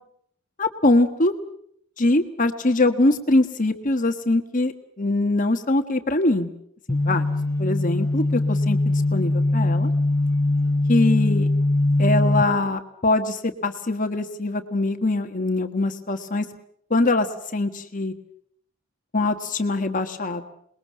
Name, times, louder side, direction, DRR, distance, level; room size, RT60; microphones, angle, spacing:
voice 1, 0.6-1.3 2.0-6.5 6.9-7.3 7.6-9.9 10.9-11.5 12.0-16.5 16.9-18.1 19.1-20.4, left 2 dB, 40° left, 6 dB, 1.4 m, -23 dB
sound 1, 6.9-12.4, left 2 dB, 15° left, 1.4 m, -21 dB
28.0 x 21.0 x 7.5 m, 0.70 s
head